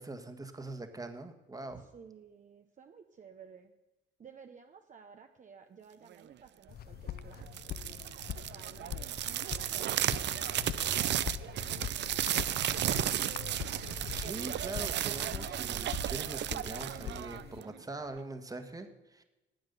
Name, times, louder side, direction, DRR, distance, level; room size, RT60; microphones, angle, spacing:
voice 1, 0.0-1.8 14.1-19.2, right 2 dB, 20° right, 8 dB, 1.5 m, -43 dB
voice 2, 1.7-3.7 4.2-8.0 8.3-13.1, right 6 dB, 40° right, 5 dB, 0.8 m, -56 dB
sound 1, 6.7-17.6, left 11 dB, 50° left, 0.5 m, -43 dB
sound 2, 7.4-17.8, right 12 dB, 65° right, 0.5 m, -34 dB
12.0 x 8.8 x 6.9 m, 1.0 s
cardioid pair, 90°, 20 cm